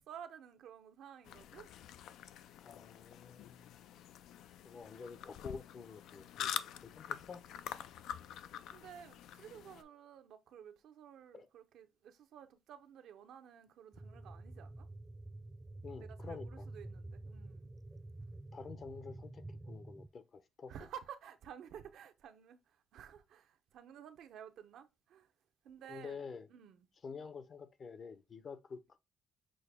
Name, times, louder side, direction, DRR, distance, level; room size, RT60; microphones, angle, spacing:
voice 1, 0.0-1.7 4.0-4.1 8.7-14.9 16.0-17.7 20.7-25.3 25.6-26.9, right 8 dB, 80° right, 0.6 m, -53 dB
sound 1, 1.2-9.8, left 10 dB, 85° left, 0.3 m, -46 dB
voice 2, 2.6-3.8 4.6-7.4 11.3-11.5 15.8-16.6 18.5-20.7 25.9-26.5 27.0-29.0, left 5 dB, 50° left, 0.7 m, -49 dB
sound 2, 13.9-20.1, right 2 dB, 10° right, 0.4 m, -49 dB
6.2 x 2.2 x 3.4 m
cardioid pair, 90°, 0 cm